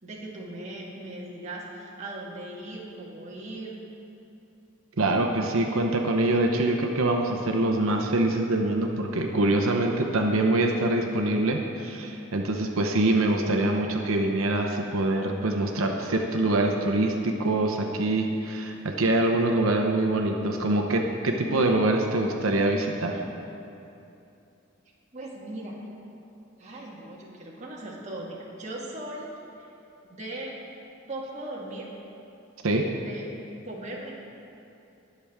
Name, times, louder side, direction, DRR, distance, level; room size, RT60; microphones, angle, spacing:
voice 1, 0.0-3.8 25.1-25.8 26.6-29.3 29.6-29.7 30.1-30.5 31.1-31.9 33.0-33.3 33.6-34.1, right 1 dB, 35° right, -4 dB, 1.6 m, -38 dB
voice 2, 5.0-23.2 32.6-32.8, right 2 dB, 85° right, 2 dB, 0.8 m, -24 dB
20.0 x 6.9 x 3.6 m, 2.8 s
head